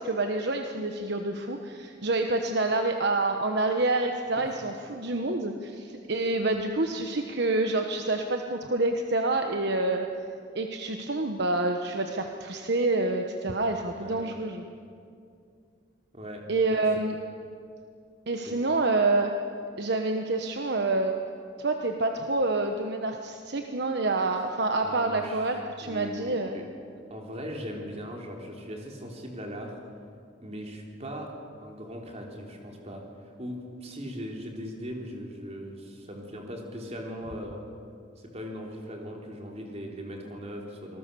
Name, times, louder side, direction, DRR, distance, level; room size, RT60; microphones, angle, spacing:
voice 1, 0.0-10.1 10.5-14.6 16.5-17.2 18.3-19.3 19.8-21.1 21.6-26.6, right 2 dB, 60° right, 4 dB, 1.2 m, -27 dB
voice 2, 14.0-14.3 16.1-16.9 18.4-18.6 24.8-25.5 25.8-26.7 27.1-29.8 30.4-31.3 31.6-37.6 38.3-41.0, equal, 35° right, 1 dB, 3.6 m, -39 dB
26.5 x 19.5 x 7.0 m, 2.3 s
head